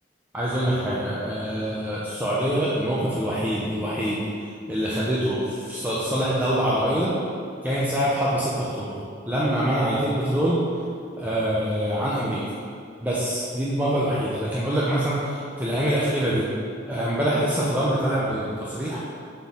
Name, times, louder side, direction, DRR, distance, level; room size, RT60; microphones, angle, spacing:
voice 1, 0.3-4.2 4.7-7.1 7.6-9.0 9.3-10.6 11.2-12.4 13.0-16.4 16.9-19.0, equal, 10° right, -7 dB, 0.6 m, -25 dB
7.6 x 4.5 x 3.6 m, 2.3 s
head